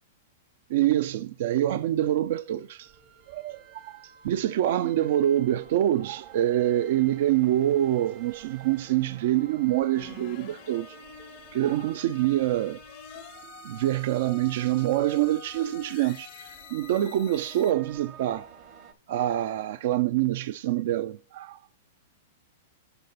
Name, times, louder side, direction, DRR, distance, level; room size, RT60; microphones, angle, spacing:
voice 1, 0.7-2.9 3.3-11.0 11.5-12.8 13.6-18.5 19.1-21.6, right 13 dB, 60° right, 0.4 m, -26 dB
sound 1, 2.8-18.9, right 8 dB, 45° right, 1.0 m, -51 dB
sound 2, 9.9-17.7, left 11 dB, 45° left, 0.5 m, -48 dB
7.9 x 6.6 x 4.1 m
hypercardioid pair, 145°, 0 cm